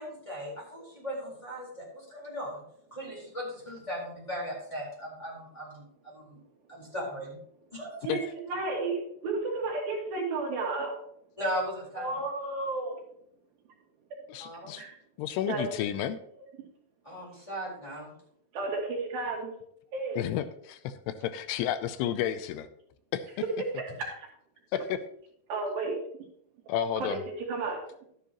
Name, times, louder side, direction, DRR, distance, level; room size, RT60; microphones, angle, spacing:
voice 1, 0.0-2.6 2.9-6.4 6.7-7.4 7.7-8.0 11.4-12.1 14.4-14.8 17.0-18.1, equal, 10° left, -4 dB, 3.7 m, -37 dB
voice 2, 8.5-11.0 12.0-13.0 14.8-15.0 15.5-15.7 18.5-19.5 19.9-20.2 23.7-24.2 25.5-26.0 27.0-27.2 27.5-28.0, right 3 dB, 65° right, -1 dB, 3.5 m, -32 dB
voice 3, 14.3-14.8 15.2-16.2 20.2-22.7 23.1-23.4 24.7-25.0 26.7-27.2, left 10 dB, 90° left, 12 dB, 2.7 m, -31 dB
12.5 x 9.8 x 3.0 m, 0.69 s
omnidirectional pair, 4.7 m